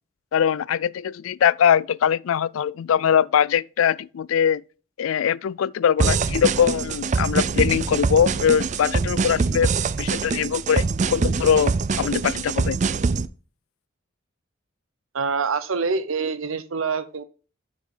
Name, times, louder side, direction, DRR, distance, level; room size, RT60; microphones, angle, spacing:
voice 1, 0.3-4.6 5.0-9.7 10.0-12.8, left 8 dB, 80° left, 0.3 m, -22 dB
sound 1, 6.0-13.3, right 4 dB, 35° right, 0.4 m, -24 dB
voice 2, 15.1-17.2, right 5 dB, 80° right, 0.8 m, -25 dB
7.3 x 6.6 x 3.8 m
head